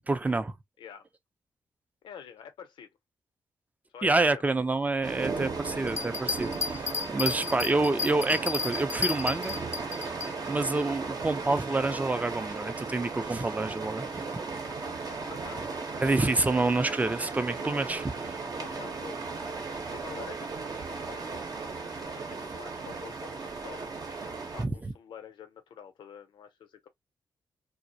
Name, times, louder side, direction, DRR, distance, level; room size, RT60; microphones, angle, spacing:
voice 1, 0.1-0.5 4.0-9.6 10.5-14.1 16.0-18.4 24.6-24.9, right 2 dB, 20° right, 0.4 m, -28 dB
voice 2, 2.0-2.9 3.9-4.4 15.0-16.0 18.6-21.4 22.2-24.0 24.5-26.9, left 8 dB, 80° left, 0.6 m, -48 dB
sound 1, 5.0-24.6, right 4 dB, 55° right, 0.8 m, -36 dB
sound 2, 5.9-10.3, left 5 dB, 35° left, 0.5 m, -32 dB
2.3 x 2.0 x 2.6 m
cardioid pair, 55°, 8 cm